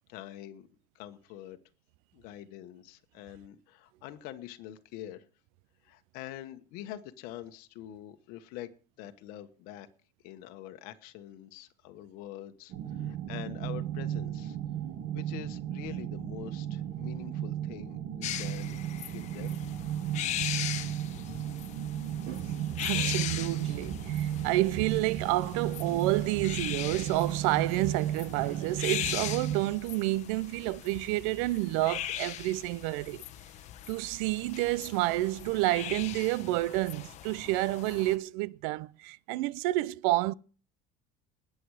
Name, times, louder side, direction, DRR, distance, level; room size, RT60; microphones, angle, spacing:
voice 1, 0.1-0.7 0.9-1.6 2.1-5.2 5.8-8.7 9.0-9.9 10.2-14.6 15.1-18.8 19.1-19.6, left 12 dB, 65° left, 1.3 m, -45 dB
sound 1, 12.7-29.7, right 10 dB, 50° right, 1.5 m, -35 dB
sound 2, 18.2-38.2, left 12 dB, 45° left, 1.2 m, -39 dB
voice 2, 22.3-33.2 33.9-40.3, right 18 dB, 85° right, 0.5 m, -29 dB
20.0 x 7.9 x 4.9 m
cardioid pair, 160°, 16 cm